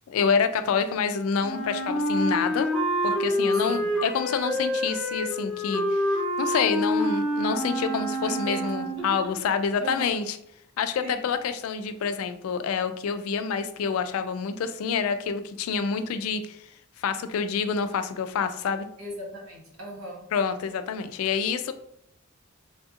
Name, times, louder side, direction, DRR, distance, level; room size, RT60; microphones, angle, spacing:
voice 1, 0.1-2.7 3.0-10.4 10.8-16.7 17.0-18.9 20.3-21.7, left 6 dB, 85° left, 10 dB, 0.3 m, -27 dB
Wind instrument woodwind instrument, 1.4-9.1, equal, 5° left, 0.4 m, -27 dB
voice 2, 3.6-3.9 8.2-8.7 9.0-9.1 9.8-10.2 11.0-11.3 19.0-20.2, equal, 80° right, -2 dB, 1.1 m, -37 dB
3.3 x 2.7 x 2.4 m, 0.73 s
head